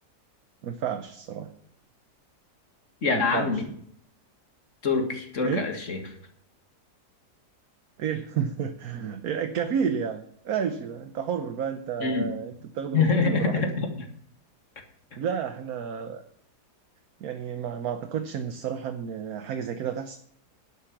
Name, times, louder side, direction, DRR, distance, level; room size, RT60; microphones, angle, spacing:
voice 1, 0.6-1.5 3.1-3.6 5.4-5.7 8.0-13.6 15.2-16.2 17.2-20.2, right 7 dB, 65° right, 7 dB, 1.3 m, -31 dB
voice 2, 3.0-3.7 4.8-6.1 12.0-12.3 12.9-13.9, left 4 dB, 50° left, 4 dB, 2.2 m, -25 dB
11.5 x 8.8 x 5.9 m, 0.67 s
omnidirectional pair, 1.8 m